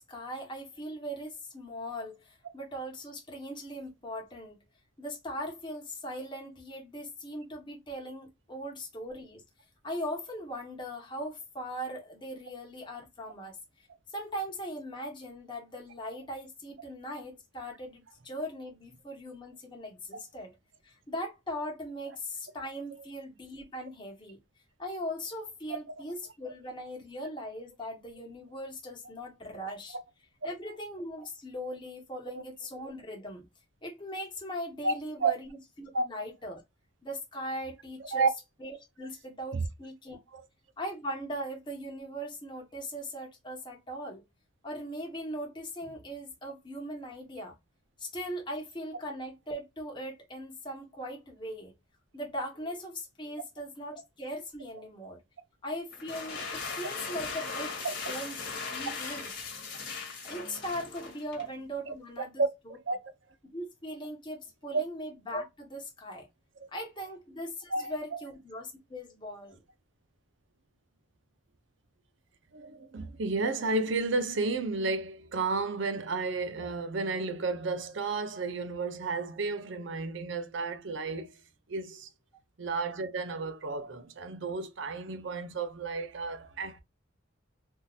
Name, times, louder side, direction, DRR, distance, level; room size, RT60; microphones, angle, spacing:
voice 1, 0.0-4.6 5.0-9.4 9.8-13.6 14.1-20.5 20.8-24.4 24.8-30.0 30.4-33.4 33.8-36.6 37.0-38.3 38.6-40.2 40.8-44.2 44.6-47.5 48.0-51.7 52.1-55.2 55.6-58.4 58.7-59.3 60.2-62.4 63.5-66.3 66.7-69.6, equal, 25° left, 1.1 m, -39 dB
sound 1, 55.9-61.5, left 4 dB, 55° left, 1.5 m, -38 dB
voice 2, 72.5-81.3 81.7-82.1 82.6-86.8, right 3 dB, 65° right, 0.6 m, -31 dB
3.6 x 2.7 x 2.4 m
head